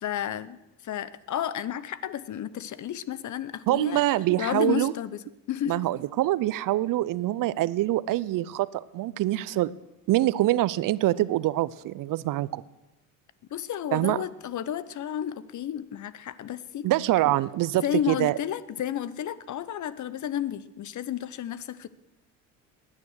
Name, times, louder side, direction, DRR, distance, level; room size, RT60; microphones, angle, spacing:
voice 1, 0.0-4.0 4.4-5.2 5.5-5.9 13.5-16.9 17.8-21.9, left 10 dB, 40° left, 17 dB, 0.9 m, -32 dB
voice 2, 3.7-4.9 5.7-9.7 10.1-12.6 13.9-14.2 16.8-18.4, right 15 dB, 45° right, 19 dB, 0.6 m, -25 dB
19.0 x 9.8 x 6.5 m, 0.95 s
hypercardioid pair, 75°, 44 cm